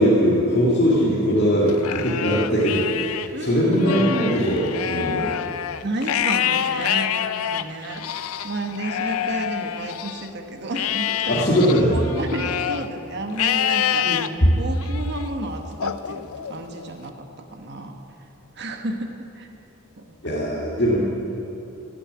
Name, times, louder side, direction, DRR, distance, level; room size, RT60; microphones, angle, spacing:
voice 1, 0.0-5.4 11.3-12.0 14.0-14.2 20.2-21.0, equal, 50° left, -6 dB, 2.2 m, -20 dB
Livestock farm animals working animals, 1.7-3.3 3.7-10.3 10.7-12.9 13.4-14.3 14.8-15.2 15.8-16.9, left 10 dB, 80° left, 0.5 m, -27 dB
voice 2, 3.3-4.4 5.8-11.3 11.9-14.1 14.6-17.1 17.5-18.0 18.6-19.1 19.3-19.5 20.0-20.4, right 1 dB, 50° right, 4 dB, 1.2 m, -31 dB
16.5 x 6.7 x 9.8 m, 2.8 s
head